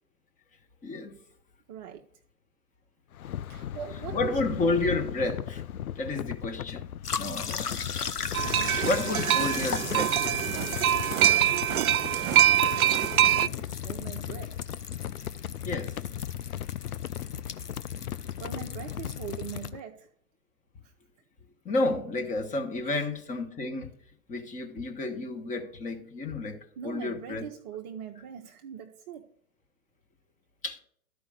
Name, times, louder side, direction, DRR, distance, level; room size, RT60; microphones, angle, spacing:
voice 1, 0.8-1.2 4.1-5.6 5.9-6.9 7.2-7.9 8.8-10.5 15.6-16.0 21.6-23.9 24.3-27.4 30.6-30.8, left 2 dB, 15° left, 1.4 m, -31 dB
voice 2, 1.7-2.1 3.5-4.6 8.5-8.9 13.3-14.6 18.4-20.1 20.8-20.9 22.8-23.1 26.8-29.3, right 9 dB, 30° right, 0.6 m, -41 dB
sound 1, 3.1-19.8, left 10 dB, 70° left, 0.6 m, -37 dB
sound 2, 7.0-19.7, left 6 dB, 90° left, 0.9 m, -39 dB
sound 3, 8.3-13.5, right 10 dB, 70° right, 0.6 m, -24 dB
12.5 x 5.0 x 6.6 m
figure-of-eight pair, 115°, 45 cm